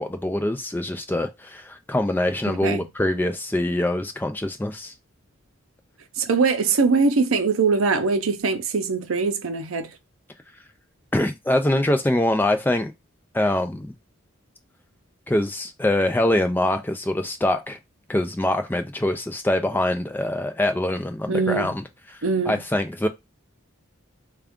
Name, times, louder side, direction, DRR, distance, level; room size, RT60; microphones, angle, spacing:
voice 1, 0.0-4.9 11.1-12.9 13.3-13.9 15.3-17.8 18.1-21.8 22.5-23.1, left 1 dB, 10° left, 0.4 m, -24 dB
voice 2, 2.5-2.9 6.2-9.9 21.3-21.7 22.2-22.6, right 4 dB, 80° right, 0.6 m, -22 dB
3.5 x 2.4 x 3.5 m
head